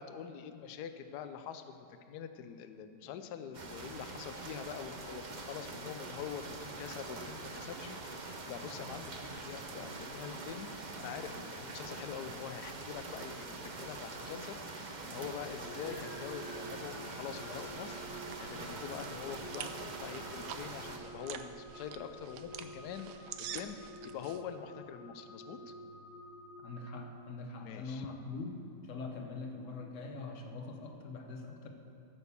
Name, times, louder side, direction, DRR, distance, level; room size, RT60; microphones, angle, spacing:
voice 1, 0.0-25.7 27.6-28.1, left 8 dB, 70° left, 9 dB, 1.2 m, -45 dB
sound 1, 3.5-21.0, right 3 dB, 40° right, 0.6 m, -44 dB
sound 2, 15.6-27.6, equal, 90° left, 1.8 m, -51 dB
sound 3, 17.6-24.4, right 9 dB, 75° right, 1.2 m, -48 dB
voice 2, 26.6-28.5 28.8-31.7, left 3 dB, 50° left, 4 dB, 1.3 m, -43 dB
14.0 x 6.3 x 6.9 m, 2.8 s
omnidirectional pair, 1.9 m